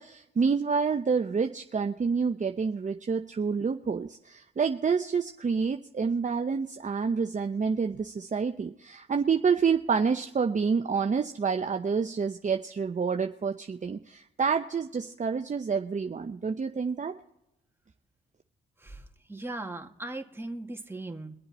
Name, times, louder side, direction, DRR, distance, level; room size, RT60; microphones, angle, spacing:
voice 1, 0.0-17.1, right 5 dB, 35° right, 5 dB, 0.8 m, -28 dB
voice 2, 19.3-21.4, right 2 dB, 10° right, 2 dB, 2.3 m, -38 dB
23.5 x 7.8 x 4.3 m, 0.83 s
supercardioid pair, 45°, 21 cm